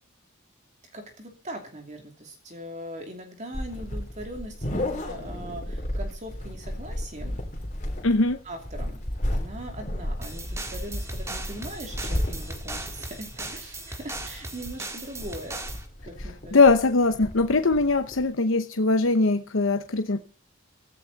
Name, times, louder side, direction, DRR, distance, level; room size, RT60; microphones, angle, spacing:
voice 1, 0.9-7.4 8.4-9.0 9.3-15.6 16.0-16.6, right 1 dB, 35° right, 3 dB, 2.7 m, -40 dB
sound 1, 3.5-18.3, left 1 dB, 35° left, 3.2 m, -33 dB
voice 2, 8.0-8.4 16.5-20.2, left 3 dB, 75° left, 8 dB, 0.9 m, -21 dB
sound 2, 10.2-15.9, right 2 dB, 15° right, 1.8 m, -38 dB
15.5 x 14.0 x 4.1 m, 0.37 s
head